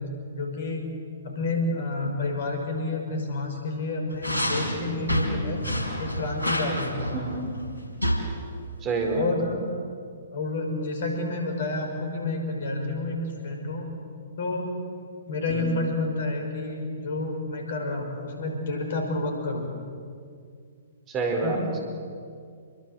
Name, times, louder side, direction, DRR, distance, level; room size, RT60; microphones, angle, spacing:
voice 1, 0.3-0.9 1.2-5.6 6.0-7.2 9.1-9.6 10.3-13.8 14.4-19.7 21.4-21.7, left 2 dB, 50° left, 3 dB, 5.8 m, -29 dB
sound 1, 4.1-8.2, equal, 85° right, 4.9 m, -28 dB
voice 2, 7.1-7.5 8.8-9.3 15.5-15.6 21.1-21.8, right 4 dB, 20° right, 2 dB, 4.7 m, -28 dB
27.5 x 23.5 x 8.0 m, 2.3 s
figure-of-eight pair, 120°, 0 cm